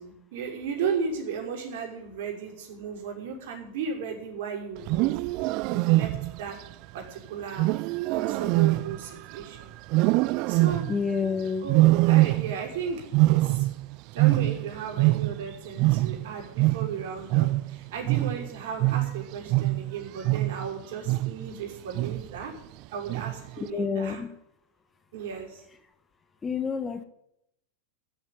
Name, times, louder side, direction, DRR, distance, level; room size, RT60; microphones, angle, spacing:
voice 1, 0.0-5.2 5.6-6.1 6.4-6.6 6.9-7.7 8.1-9.7 10.4-10.8 11.6-13.7 14.1-22.5 22.9-24.2 25.1-25.6, right 6 dB, 65° right, 0 dB, 6.0 m, -35 dB
Wild animals, 4.8-6.5 7.6-9.4 9.9-11.1 11.7-12.7 13.0-15.5 15.8-20.7 21.1-21.5 21.9-22.4 23.1-23.5, right 19 dB, 50° right, 0.5 m, -24 dB
voice 2, 10.9-11.7 23.6-24.3 26.4-27.0, left 5 dB, 20° left, 10 dB, 1.3 m, -29 dB
14.0 x 8.2 x 9.9 m, 0.78 s
hypercardioid pair, 120°, 0 cm